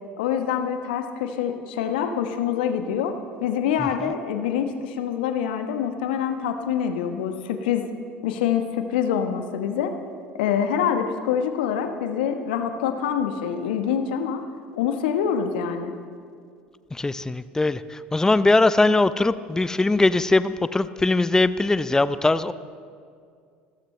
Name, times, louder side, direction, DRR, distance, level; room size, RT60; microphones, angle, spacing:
voice 1, 0.2-3.1 3.4-7.9 8.2-9.9 10.4-14.4 14.7-15.9, left 8 dB, 70° left, 7 dB, 1.1 m, -25 dB
voice 2, 16.9-22.5, left 2 dB, 10° left, 15 dB, 0.5 m, -21 dB
26.5 x 14.0 x 3.2 m, 2.2 s
figure-of-eight pair, 65°, 5 cm